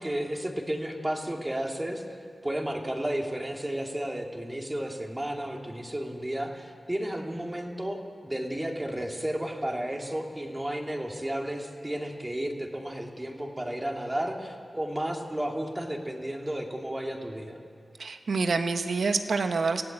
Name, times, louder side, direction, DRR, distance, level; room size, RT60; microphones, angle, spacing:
voice 1, 0.0-2.0 2.4-17.6, right 1 dB, 20° right, 1 dB, 2.7 m, -33 dB
voice 2, 18.0-19.8, right 4 dB, 75° right, 7 dB, 1.4 m, -27 dB
24.0 x 15.5 x 8.8 m, 2.3 s
cardioid pair, 60°, 0 cm